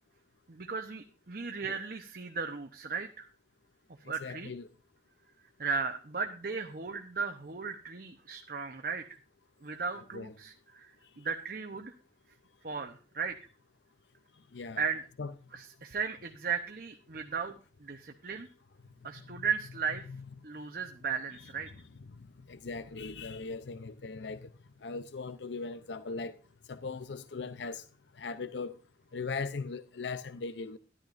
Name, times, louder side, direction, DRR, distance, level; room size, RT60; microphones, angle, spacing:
voice 1, 0.5-3.3 4.1-4.5 5.6-9.0 9.6-11.9 12.6-13.4 14.8-15.1 15.5-18.5 19.0-20.1 20.4-21.7, right 5 dB, 55° right, 0.9 m, -36 dB
voice 2, 4.2-4.7 10.1-10.3 14.5-14.8 15.2-15.3 19.3-19.5 20.1-20.2 22.5-24.5 24.8-26.3 26.7-27.8 28.2-28.7 29.1-30.8, left 4 dB, 80° left, 0.6 m, -39 dB
13.5 x 11.0 x 2.6 m
head